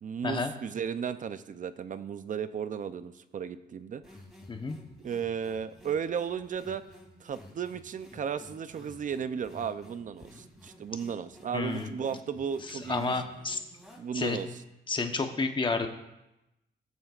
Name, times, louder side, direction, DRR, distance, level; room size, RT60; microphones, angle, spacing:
voice 1, 0.0-4.0 5.0-6.8 7.2-13.2 14.0-14.5, right 7 dB, 45° right, 12 dB, 0.6 m, -35 dB
sound 1, 4.0-14.7, left 1 dB, ahead, 2.8 m, -53 dB
voice 2, 11.5-11.9 12.7-13.6 14.1-14.4 14.9-15.9, left 4 dB, 25° left, 5 dB, 1.0 m, -30 dB
19.5 x 7.8 x 2.5 m, 0.93 s
cardioid pair, 120°, 19 cm